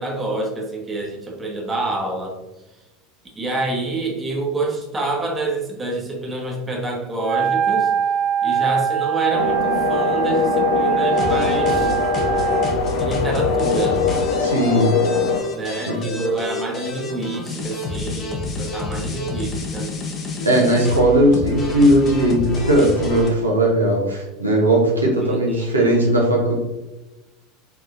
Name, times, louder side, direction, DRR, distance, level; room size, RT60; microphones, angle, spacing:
voice 1, 0.0-2.4 3.3-7.9 8.4-11.9 13.0-14.0 15.5-19.9 25.2-25.9, right 2 dB, 20° right, 0 dB, 1.1 m, -27 dB
Wind instrument woodwind instrument, 7.2-12.8, right 8 dB, 45° right, 0.5 m, -22 dB
sound 1, 9.3-15.4, left 5 dB, 65° left, 0.4 m, -22 dB
sound 2, 11.2-23.3, left 2 dB, 35° left, 0.9 m, -29 dB
voice 2, 14.4-15.0 15.9-16.1 20.4-26.6, right 1 dB, 85° right, -2 dB, 1.0 m, -18 dB
4.6 x 3.9 x 2.6 m, 1.1 s
figure-of-eight pair, 80°, 0 cm